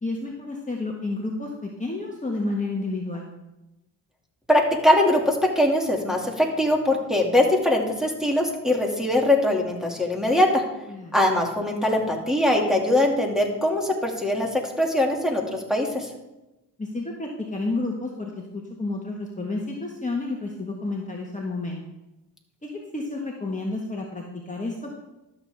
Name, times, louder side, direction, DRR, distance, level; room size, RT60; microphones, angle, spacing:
voice 1, 0.0-3.3 10.9-11.2 16.8-21.8 22.6-25.0, left 2 dB, 20° left, -1 dB, 1.6 m, -30 dB
voice 2, 4.5-10.6 11.1-16.1, left 1 dB, ahead, -2 dB, 2.4 m, -22 dB
12.5 x 7.1 x 3.6 m, 0.97 s
supercardioid pair, 55°, 41 cm